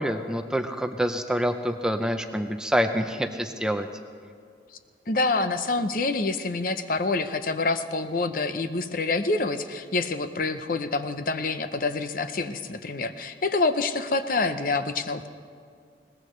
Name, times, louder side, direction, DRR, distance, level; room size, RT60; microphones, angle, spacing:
voice 1, 0.0-3.9, equal, 5° right, 6 dB, 0.5 m, -26 dB
voice 2, 5.1-15.3, left 3 dB, 50° left, 9 dB, 0.7 m, -27 dB
21.5 x 19.0 x 3.2 m, 2.2 s
head